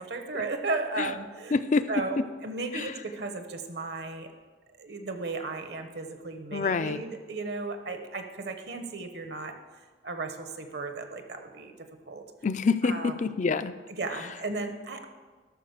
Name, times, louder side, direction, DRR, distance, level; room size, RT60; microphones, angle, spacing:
voice 1, 0.0-1.6 1.9-4.3 4.8-9.5 10.0-11.7 12.1-12.2 12.8-13.1 14.0-15.0, right 3 dB, 65° right, 7 dB, 1.1 m, -35 dB
voice 2, 1.5-1.9 2.7-2.9 6.5-7.0 12.4-13.7, left 4 dB, 45° left, 13 dB, 0.5 m, -26 dB
13.0 x 6.1 x 6.6 m, 1.4 s
head